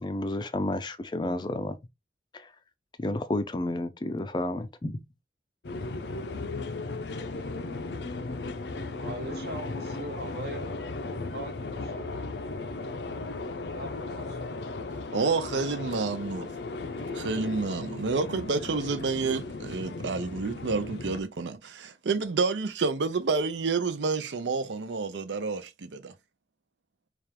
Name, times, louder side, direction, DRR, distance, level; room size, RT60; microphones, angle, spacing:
voice 1, 0.0-1.8 2.3-2.5 3.0-5.0, left 1 dB, 25° left, 0.4 m, -31 dB
sound 1, 5.6-21.2, left 3 dB, 75° left, 0.6 m, -36 dB
voice 2, 8.9-10.6 11.3-12.2 13.7-14.4, right 1 dB, 60° right, 1.0 m, -40 dB
voice 3, 15.1-16.5 17.1-26.1, right 4 dB, 85° right, 0.6 m, -29 dB
4.3 x 2.4 x 3.3 m
head